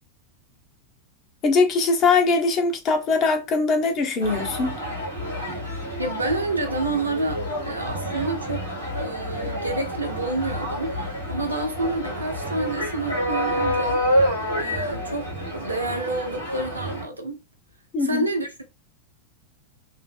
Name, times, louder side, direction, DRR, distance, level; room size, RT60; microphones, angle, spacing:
voice 1, 1.4-4.8 17.9-18.3, left 4 dB, 35° left, 0.7 m, -21 dB
sound 1, 4.2-17.0, equal, 85° left, 1.4 m, -28 dB
voice 2, 6.0-8.6 8.9-10.9 11.3-14.0 14.6-17.4 18.0-18.6, right 2 dB, 80° right, 0.6 m, -29 dB
2.9 x 2.0 x 3.3 m
figure-of-eight pair, 90°, 0 cm